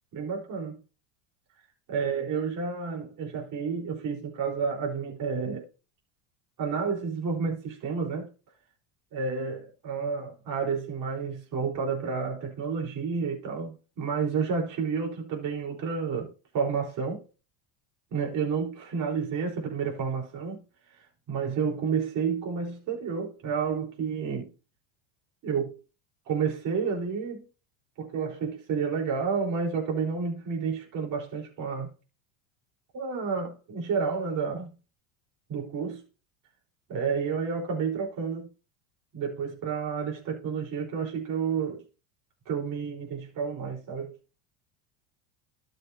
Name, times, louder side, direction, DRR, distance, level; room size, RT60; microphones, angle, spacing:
voice 1, 0.1-0.8 1.9-5.7 6.6-8.3 9.1-17.2 18.1-20.6 20.9-24.5 25.4-25.7 26.3-27.4 28.0-31.9 32.9-34.7 35.5-36.0 36.9-38.5 39.1-41.8 42.5-44.2, right 5 dB, 50° right, 4.5 m, -30 dB
13.0 x 6.8 x 2.8 m
supercardioid pair, 100°, 41 cm